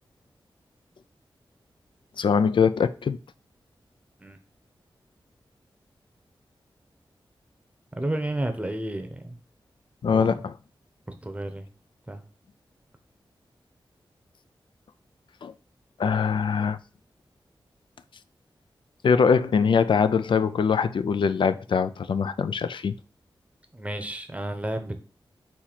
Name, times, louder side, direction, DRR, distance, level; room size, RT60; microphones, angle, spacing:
voice 1, 2.2-3.2 10.0-10.5 15.4-15.5 16.0-16.8 19.0-22.9, left 6 dB, 65° left, 0.3 m, -22 dB
voice 2, 7.9-9.4 10.1-10.4 11.1-11.7 12.1-12.2 23.7-25.0, right 1 dB, 15° right, 0.8 m, -32 dB
4.4 x 2.8 x 4.0 m
wide cardioid pair, 65°, 9 cm